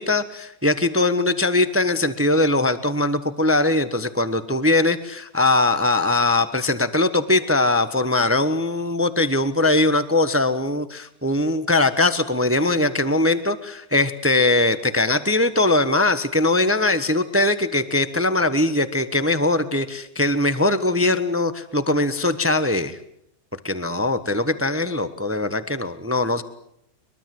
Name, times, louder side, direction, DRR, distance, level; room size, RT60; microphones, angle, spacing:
voice 1, 0.0-23.0 23.6-26.4, left 2 dB, 10° right, 12 dB, 0.8 m, -21 dB
23.0 x 23.0 x 7.7 m, 0.73 s
omnidirectional pair, 1.8 m